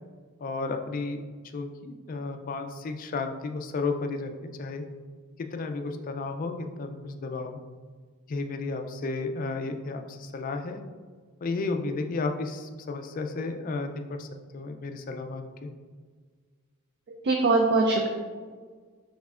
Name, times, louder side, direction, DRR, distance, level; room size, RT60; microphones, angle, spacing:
voice 1, 0.4-1.2 1.5-4.8 5.4-7.6 8.3-10.8 11.4-14.3 14.5-15.7, left 3 dB, 40° left, 5 dB, 0.3 m, -33 dB
voice 2, 17.1-18.1, right 3 dB, 50° right, 2 dB, 0.4 m, -22 dB
5.3 x 3.6 x 2.4 m, 1.5 s
head